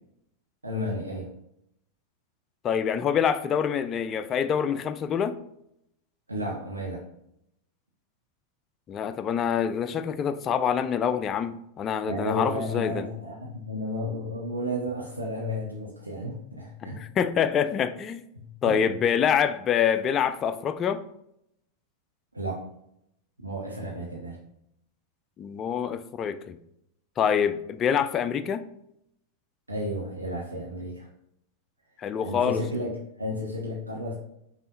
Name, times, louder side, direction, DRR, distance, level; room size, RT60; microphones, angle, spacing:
voice 1, 0.6-1.3 6.3-7.0 12.1-17.0 18.4-18.8 22.3-22.7 23.4-24.4 29.7-31.1 32.2-34.1, left 1 dB, 80° right, 0.8 m, -32 dB
voice 2, 2.6-5.4 8.9-13.1 16.8-18.2 18.6-21.0 25.4-26.6 27.2-28.6 32.0-32.6, left 8 dB, 30° left, 0.3 m, -26 dB
5.5 x 2.5 x 3.8 m
figure-of-eight pair, 90°, 0 cm